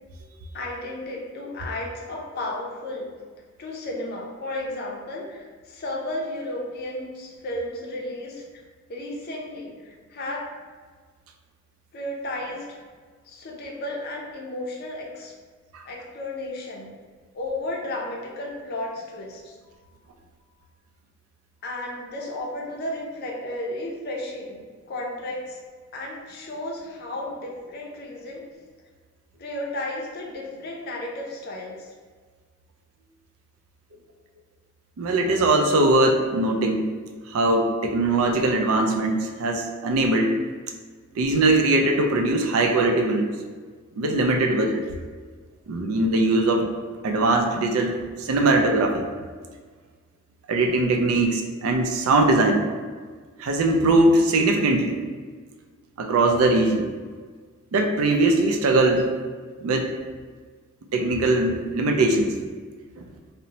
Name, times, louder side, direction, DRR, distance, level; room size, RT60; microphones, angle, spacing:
voice 1, 0.5-3.1 3.6-8.6 8.9-10.5 11.9-12.7 13.2-15.3 15.9-16.9 17.3-19.6 21.6-25.6 25.9-28.4 29.4-31.9, left 1 dB, 50° left, -2 dB, 0.4 m, -33 dB
voice 2, 35.0-36.9 37.3-40.4 41.2-43.3 44.0-44.8 45.7-46.7 47.0-49.1 50.5-52.6 53.4-55.0 56.0-56.9 57.7-59.1 59.6-59.9 60.9-62.3 63.0-63.1, right 2 dB, 85° right, 3 dB, 0.4 m, -21 dB
2.6 x 2.1 x 2.8 m, 1.5 s
head